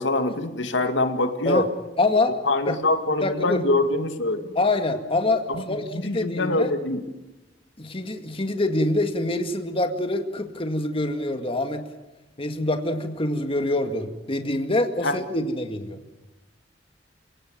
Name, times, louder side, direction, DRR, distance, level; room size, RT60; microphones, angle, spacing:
voice 1, 0.0-1.6 2.5-4.5 5.5-5.6 5.9-7.0 15.0-15.1, left 2 dB, 90° left, 7 dB, 2.3 m, -24 dB
voice 2, 2.0-2.3 2.7-2.8 3.2-3.6 4.6-6.7 7.8-11.8 12.4-16.0, left 2 dB, 30° left, 6 dB, 2.0 m, -25 dB
29.0 x 17.5 x 9.3 m, 1.1 s
head